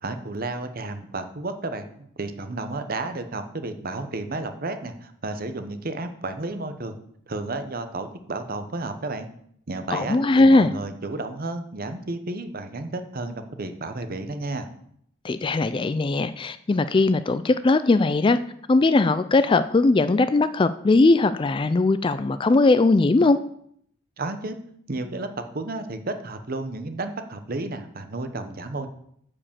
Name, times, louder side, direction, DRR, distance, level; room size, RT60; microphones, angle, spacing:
voice 1, 0.0-6.9 7.3-9.3 9.7-14.7 24.2-24.6 24.9-28.9, right 2 dB, 45° right, 8 dB, 0.9 m, -32 dB
voice 2, 9.9-10.7 15.2-18.4 18.7-23.4, left 3 dB, 25° left, 12 dB, 0.3 m, -19 dB
9.4 x 5.0 x 7.3 m, 0.67 s
head